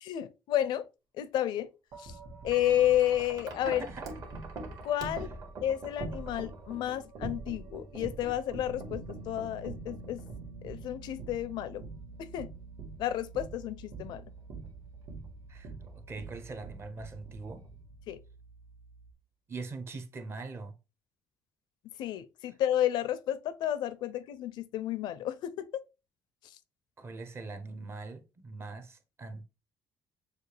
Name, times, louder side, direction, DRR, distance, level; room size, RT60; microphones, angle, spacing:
voice 1, 0.0-0.9 1.2-1.7 2.0-2.1 2.4-3.8 4.8-5.3 5.6-10.2 10.6-11.8 12.2-12.5 13.0-14.2 18.1-18.2 22.0-25.8, left 12 dB, 75° left, 0.5 m, -31 dB
Wind chime, 1.9-18.1, right 3 dB, 55° right, 1.5 m, -44 dB
voice 2, 3.6-4.1 15.5-17.6 19.5-20.8 27.0-29.4, right 3 dB, 35° right, 0.8 m, -42 dB
sound 1, 8.7-19.1, right 2 dB, 90° right, 0.7 m, -50 dB
6.6 x 2.4 x 3.2 m
cardioid pair, 120°, 8 cm